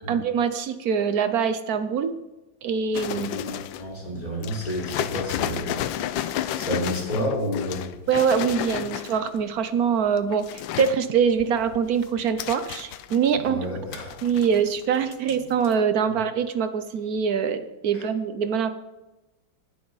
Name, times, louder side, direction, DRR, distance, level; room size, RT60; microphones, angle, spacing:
voice 1, 0.1-2.1 2.6-3.3 8.1-13.6 14.2-18.7, right 7 dB, 60° right, 10 dB, 1.1 m, -24 dB
sound 1, 2.9-3.9 4.4-9.4 10.1-11.0 11.4-13.5 13.9-14.9 15.1-15.4 15.6-15.7, left 11 dB, 75° left, 1.3 m, -32 dB
voice 2, 3.1-5.8 6.6-8.0 13.3-14.1 17.9-18.0, equal, 20° left, -4 dB, 5.1 m, -30 dB
20.0 x 8.6 x 4.1 m, 1.0 s
omnidirectional pair, 2.3 m